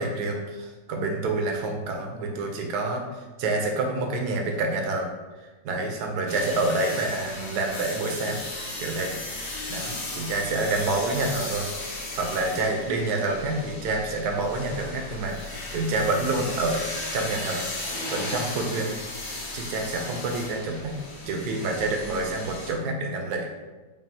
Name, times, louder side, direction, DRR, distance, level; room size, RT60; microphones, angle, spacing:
voice 1, 0.0-5.1 5.6-8.4 8.8-11.7 12.2-15.4 15.7-16.8 17.1-17.7 18.1-18.9 19.5-21.0 21.3-23.5, right 2 dB, 75° right, 2 dB, 1.2 m, -28 dB
sound 1, 6.3-22.7, left 2 dB, 50° left, 0.9 m, -36 dB
5.3 x 2.4 x 2.7 m, 1.2 s
omnidirectional pair, 1.8 m